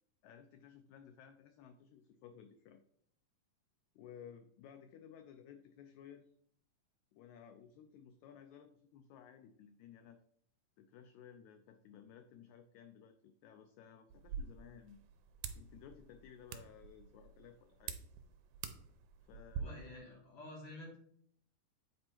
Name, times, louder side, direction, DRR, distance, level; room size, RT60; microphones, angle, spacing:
voice 1, 0.2-2.8 3.9-6.3 7.1-10.2 10.8-15.0 15.5-18.0 19.2-19.8, left 8 dB, 85° left, 8 dB, 1.6 m, -57 dB
sound 1, 14.1-19.6, right 7 dB, 80° right, 2.2 m, -48 dB
voice 2, 19.6-21.0, left 1 dB, 45° left, -3 dB, 2.5 m, -50 dB
7.8 x 4.3 x 4.4 m, 0.66 s
omnidirectional pair, 3.8 m